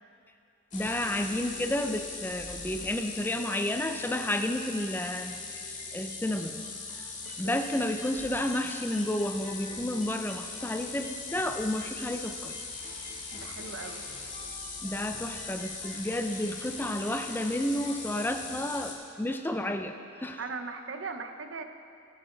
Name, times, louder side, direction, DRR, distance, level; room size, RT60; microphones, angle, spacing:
sound 1, 0.7-18.9, left 4 dB, 40° left, 1.7 m, -40 dB
voice 1, 0.7-5.4 5.9-6.6 7.0-7.1 7.4-12.6 14.8-20.4, left 1 dB, 10° left, 6 dB, 0.4 m, -31 dB
voice 2, 13.3-14.0 20.4-21.6, right 4 dB, 70° right, 7 dB, 0.8 m, -38 dB
18.0 x 7.5 x 3.9 m, 2.4 s
head